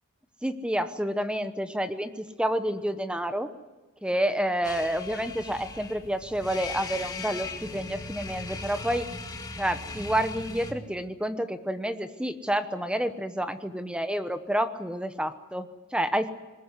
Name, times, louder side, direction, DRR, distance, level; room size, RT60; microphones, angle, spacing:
voice 1, 0.4-3.5 4.0-9.1 9.6-16.3, right 1 dB, 5° right, 10 dB, 0.9 m, -29 dB
sound 1, 4.6-10.7, left 3 dB, 20° left, 2.2 m, -38 dB
21.5 x 19.5 x 9.7 m, 1.2 s
head